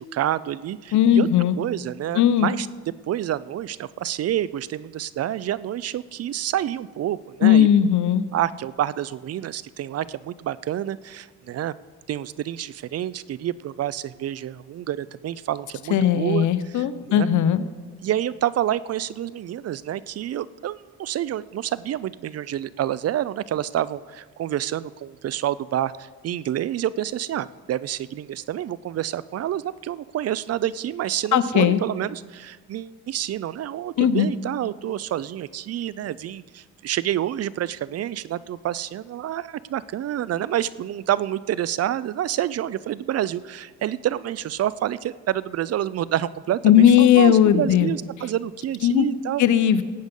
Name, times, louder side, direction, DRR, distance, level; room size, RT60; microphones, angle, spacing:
voice 1, 0.0-1.3 1.6-2.7 3.1-7.7 8.3-11.7 12.1-16.5 16.7-17.3 18.0-49.4, right 12 dB, 55° right, 19 dB, 0.5 m, -28 dB
voice 2, 0.9-1.6 2.1-2.5 7.4-8.2 15.9-17.6 31.3-31.8 34.0-34.3 46.6-47.9 48.8-49.1 49.4-49.8, left 10 dB, 75° left, 13 dB, 0.8 m, -17 dB
18.0 x 8.1 x 5.3 m, 1.5 s
cardioid pair, 90°, 30 cm